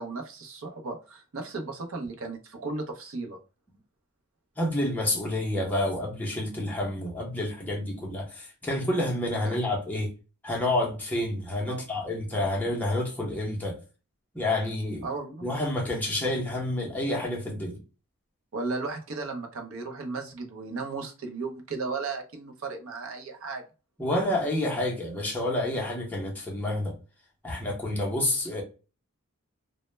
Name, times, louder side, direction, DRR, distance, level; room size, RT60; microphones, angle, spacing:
voice 1, 0.0-3.4 9.4-9.6 11.7-11.9 15.0-15.5 18.5-23.6, right 3 dB, 65° right, 0.5 m, -35 dB
voice 2, 4.6-10.1 10.4-13.8 14.3-15.0 15.4-17.8 24.0-26.9 27.4-28.6, left 1 dB, 5° left, 0.5 m, -29 dB
2.0 x 2.0 x 3.0 m
head